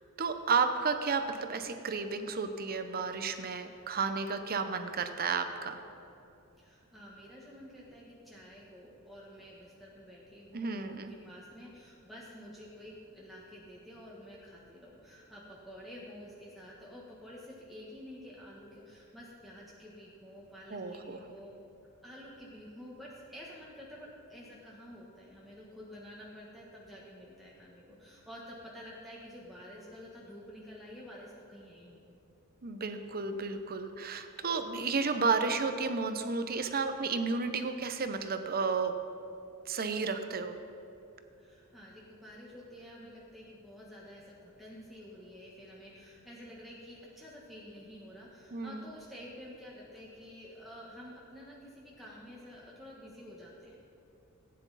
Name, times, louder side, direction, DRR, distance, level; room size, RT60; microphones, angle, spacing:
voice 1, 0.2-5.8 10.5-11.1 20.7-21.2 32.6-39.0 39.7-40.5 48.5-48.8, right 4 dB, 45° right, 8 dB, 0.8 m, -32 dB
voice 2, 6.6-21.5 22.0-32.0 33.4-33.5 41.4-53.8, equal, ahead, -6 dB, 1.4 m, -50 dB
16.0 x 9.6 x 4.1 m, 2.9 s
head